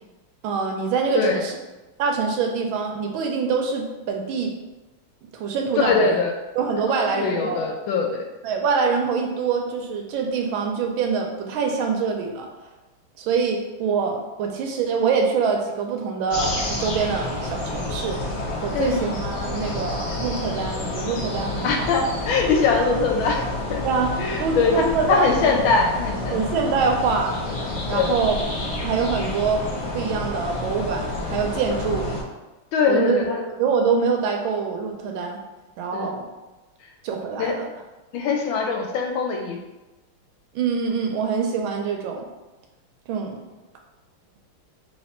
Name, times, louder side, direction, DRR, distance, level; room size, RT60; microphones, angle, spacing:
voice 1, 0.4-1.6 2.0-4.5 5.2-6.2 6.6-7.6 8.4-12.5 13.2-18.2 18.6-21.9 23.8-24.1 24.4-25.3 26.3-27.3 27.9-28.4 28.8-29.6 29.9-32.1 32.9-33.2 33.6-35.4 35.8-36.3 37.0-37.7 40.5-42.2 43.1-43.4, right 5 dB, 75° right, 2 dB, 1.3 m, -24 dB
voice 2, 5.8-6.3 7.1-8.3 18.7-19.0 21.6-23.4 23.7-23.8 24.2-26.4 27.9-28.1 32.7-33.4 35.9-36.1 37.4-37.6 38.1-39.6, left 4 dB, 75° left, 2 dB, 1.3 m, -22 dB
sound 1, 16.3-32.2, left 2 dB, 45° left, 1.0 m, -29 dB
3.2 x 3.1 x 4.2 m, 1.1 s
omnidirectional pair, 2.3 m